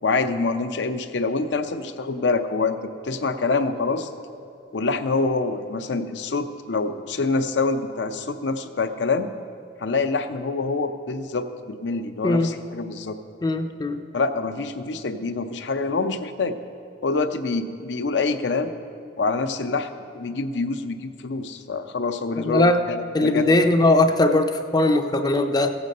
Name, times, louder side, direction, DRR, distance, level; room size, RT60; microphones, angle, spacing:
voice 1, 0.0-2.8 3.0-4.1 4.7-9.3 9.8-13.2 14.1-16.6 17.0-18.7 19.2-23.7, left 3 dB, 65° left, 8 dB, 0.6 m, -26 dB
voice 2, 13.4-14.0 22.4-22.8 23.1-25.7, left 2 dB, 20° left, 7 dB, 0.5 m, -20 dB
15.5 x 7.9 x 5.4 m, 2.6 s
head